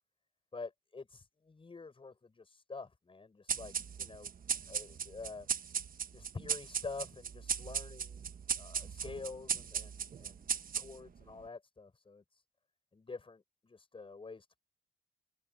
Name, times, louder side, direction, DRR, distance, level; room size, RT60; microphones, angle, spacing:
voice 1, 0.5-4.3 4.7-5.5 6.1-8.2 8.6-12.2 12.9-14.6, left 4 dB, 25° left, 6.7 m, -47 dB
sound 1, 3.5-11.2, right 7 dB, 45° right, 1.3 m, -37 dB
cardioid pair, 90°, 20 cm